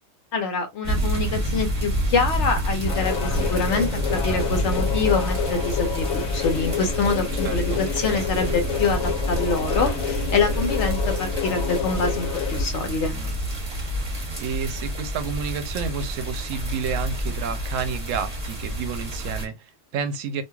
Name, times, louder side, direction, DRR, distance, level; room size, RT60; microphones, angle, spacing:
voice 1, 0.3-13.2, left 4 dB, 65° left, 1.0 m, -26 dB
sound 1, 0.8-19.4, equal, 30° right, 1.1 m, -28 dB
sound 2, 2.9-12.7, left 9 dB, 90° left, 1.0 m, -29 dB
voice 2, 7.4-7.8 13.1-13.4 14.4-20.4, right 6 dB, 75° right, 0.9 m, -30 dB
3.0 x 2.6 x 2.3 m
omnidirectional pair, 1.4 m